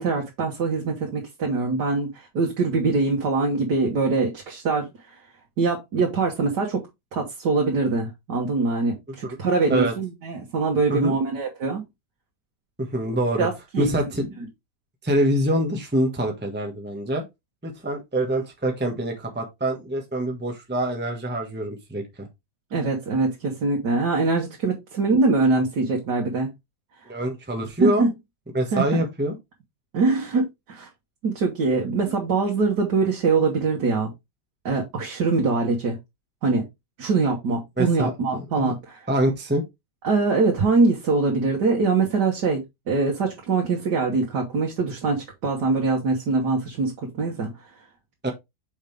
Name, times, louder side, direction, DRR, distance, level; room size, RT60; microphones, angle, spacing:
voice 1, 0.0-4.9 5.6-6.8 7.1-11.8 13.4-13.9 22.7-26.5 27.8-28.1 28.7-29.1 29.9-30.9 31.2-34.1 34.7-36.0 36.4-36.7 37.0-39.1 40.0-47.5, right 3 dB, 75° right, 1.9 m, -23 dB
voice 2, 12.8-13.5 13.8-14.5 15.0-17.2 17.6-22.3 27.1-28.1 28.5-29.3 37.8-38.7 39.1-39.6 48.2-48.3, right 1 dB, 5° right, 1.3 m, -25 dB
6.3 x 5.3 x 3.3 m
omnidirectional pair, 1.8 m